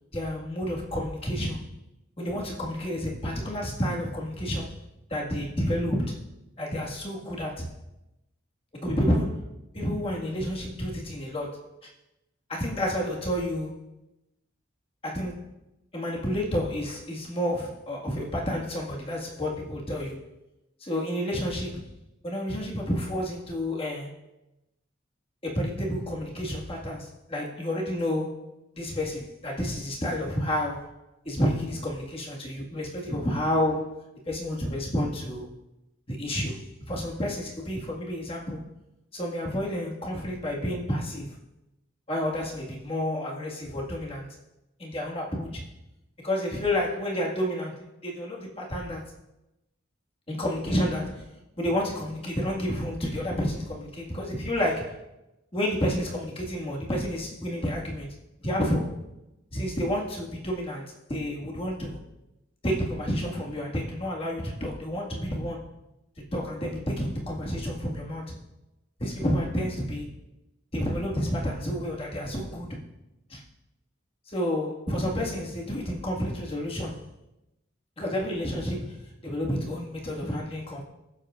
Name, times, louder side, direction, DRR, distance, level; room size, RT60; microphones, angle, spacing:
voice 1, 0.1-1.6 2.2-4.7 5.1-6.2 6.6-7.7 8.7-9.5 9.7-11.9 12.5-13.9 15.0-15.4 15.9-20.2 20.8-21.9 22.2-24.1 25.4-30.9 31.3-35.5 36.1-38.6 39.1-41.4 42.1-44.3 44.8-45.6 46.2-49.1 50.3-55.0 55.5-58.1 58.4-58.9 59.5-62.0 62.6-65.7 66.3-68.4 69.0-70.1 70.7-72.8 73.3-73.4 74.3-77.1 78.0-79.0 79.2-80.8, equal, 30° left, -3 dB, 1.9 m, -30 dB
22.5 x 7.6 x 2.5 m, 0.95 s
head